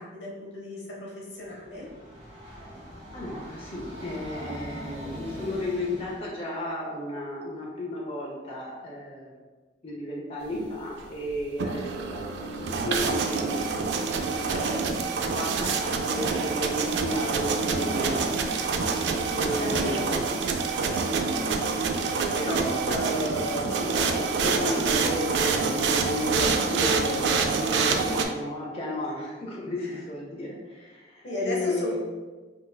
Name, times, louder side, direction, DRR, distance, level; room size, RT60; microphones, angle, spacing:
voice 1, 0.0-1.9 19.0-20.4 20.9-21.5 29.8-30.0 31.2-32.0, left 1 dB, 85° left, -3 dB, 1.0 m, -36 dB
Train, 1.4-6.3, equal, 30° right, 0.8 m, -41 dB
voice 2, 3.1-9.4 9.8-12.2 12.6-13.9 14.5-14.9 15.2-18.3 19.3-20.2 20.9-21.3 22.3-32.0, left 1 dB, 35° left, -4 dB, 0.5 m, -33 dB
sound 1, 11.4-28.3, right 4 dB, 80° right, 0.3 m, -26 dB
3.8 x 2.6 x 2.2 m, 1.3 s
head